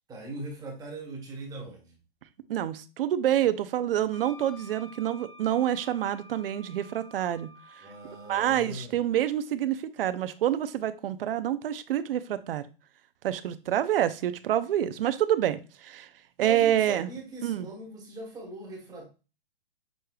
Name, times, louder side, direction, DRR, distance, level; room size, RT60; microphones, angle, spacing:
voice 1, 0.1-2.0 7.8-9.0 16.4-19.1, right 2 dB, 15° right, -1 dB, 1.3 m, -40 dB
voice 2, 2.5-7.5 8.3-12.7 13.2-16.1 16.4-17.1 17.4-17.7, right 11 dB, 70° right, 13 dB, 0.6 m, -27 dB
Wind instrument woodwind instrument, 4.1-8.6, left 1 dB, 35° left, 1.3 m, -51 dB
6.4 x 3.2 x 2.3 m, 0.32 s
hypercardioid pair, 150°, 30 cm